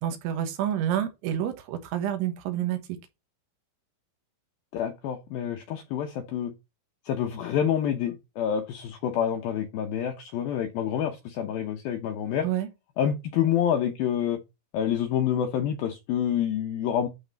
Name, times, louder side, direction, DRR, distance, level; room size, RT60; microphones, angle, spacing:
voice 1, 0.0-2.8 12.4-12.7, right 10 dB, 80° right, 3.6 m, -28 dB
voice 2, 4.7-6.5 7.1-12.5 13.0-14.4 14.7-17.1, left 9 dB, 80° left, 2.1 m, -27 dB
11.5 x 4.2 x 4.1 m
omnidirectional pair, 5.4 m